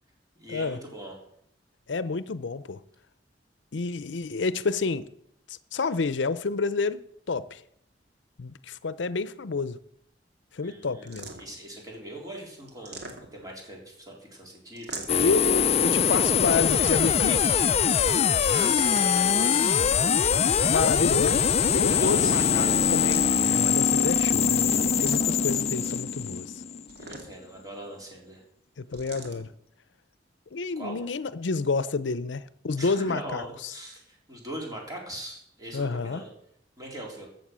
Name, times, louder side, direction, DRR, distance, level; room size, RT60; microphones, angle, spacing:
voice 1, 0.4-1.2 10.6-15.6 18.5-20.1 20.4-21.3 21.8-22.9 25.2-26.1 27.0-28.4 30.8-31.0 32.8-36.3 36.8-37.3, right 1 dB, 20° right, 3.9 m, -41 dB
voice 2, 1.9-2.8 3.7-5.1 5.5-7.6 8.4-9.8 10.5-11.3 15.2-17.6 20.7-21.4 21.7-26.5 28.8-29.5 30.5-33.4 35.7-36.2, left 4 dB, 85° left, 0.6 m, -29 dB
sound 1, 11.1-11.7 12.7-13.6 14.8-15.4 16.7-17.4 18.7-19.4 21.0-21.8 22.9-23.7 25.0-25.5 26.9-27.6 28.9-29.4, right 3 dB, 65° right, 2.3 m, -42 dB
sound 2, 15.1-27.0, left 7 dB, 35° left, 0.4 m, -23 dB
14.0 x 7.8 x 6.2 m
head